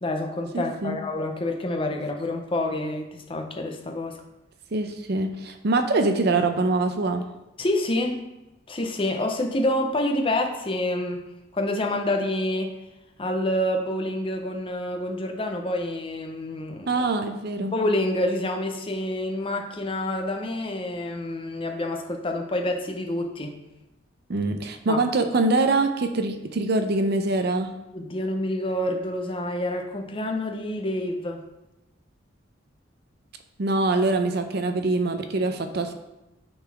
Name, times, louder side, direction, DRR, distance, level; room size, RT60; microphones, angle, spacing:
voice 1, 0.0-4.2 7.6-8.3 8.7-11.2 11.5-12.7 13.2-17.0 17.7-23.6 24.9-25.0 27.9-31.4, left 1 dB, 30° left, 3 dB, 0.7 m, -27 dB
voice 2, 0.5-1.0 4.7-7.3 16.9-17.7 24.3-27.7 33.6-35.9, right 3 dB, 60° right, 7 dB, 0.6 m, -24 dB
8.6 x 4.0 x 3.5 m, 0.96 s
head